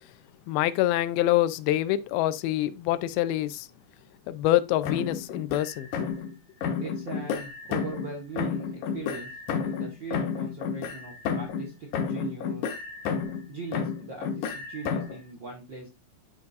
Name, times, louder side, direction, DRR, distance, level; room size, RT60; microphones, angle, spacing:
voice 1, 0.5-3.7 4.3-5.9, left 14 dB, 90° left, 2.4 m, -25 dB
sound 1, 4.8-6.3 6.6-8.1 8.4-11.7 11.9-13.4 13.7-15.2, left 6 dB, 70° left, 2.1 m, -31 dB
voice 2, 6.8-9.3 9.6-12.7 13.5-15.9, right 4 dB, 60° right, 1.1 m, -40 dB
12.0 x 4.0 x 2.4 m
omnidirectional pair, 4.2 m